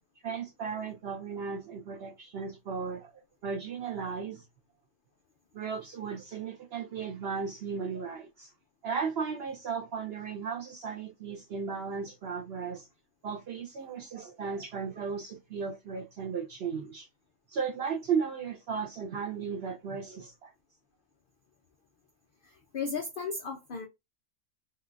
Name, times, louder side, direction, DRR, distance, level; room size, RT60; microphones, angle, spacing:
voice 1, 0.2-3.1 3.4-4.4 5.5-8.5 8.8-12.9 13.2-17.1 17.5-20.5, right 6 dB, 65° right, 0.6 m, -35 dB
voice 2, 22.4-23.9, left 5 dB, 85° left, 0.4 m, -35 dB
3.7 x 2.3 x 2.4 m
omnidirectional pair, 1.5 m